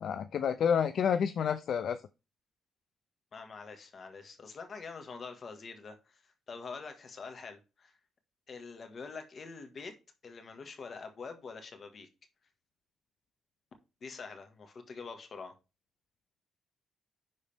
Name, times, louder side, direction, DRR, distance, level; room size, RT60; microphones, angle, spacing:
voice 1, 0.0-2.0, left 7 dB, 65° left, 0.5 m, -29 dB
voice 2, 3.3-7.9 8.5-10.0 10.2-12.1 14.0-15.6, left 4 dB, 45° left, 1.8 m, -45 dB
11.0 x 4.0 x 3.5 m
cardioid pair, 105°, 0 cm